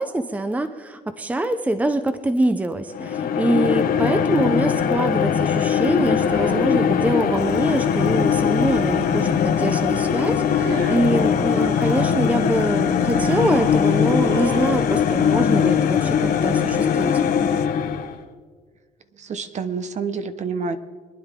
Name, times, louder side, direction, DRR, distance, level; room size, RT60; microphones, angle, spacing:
voice 1, 0.0-17.1, right 1 dB, 10° right, 10 dB, 0.7 m, -24 dB
sound 1, 2.9-18.2, left 7 dB, 60° left, 1.1 m, -21 dB
sound 2, 5.7-7.3 7.6-15.1, right 4 dB, 70° right, 2.3 m, -35 dB
sound 3, 7.4-17.7, left 9 dB, 85° left, 1.0 m, -39 dB
voice 2, 19.2-20.8, right 5 dB, 45° right, 11 dB, 1.0 m, -28 dB
25.0 x 10.0 x 3.7 m, 1.5 s
cardioid pair, 110°, 17 cm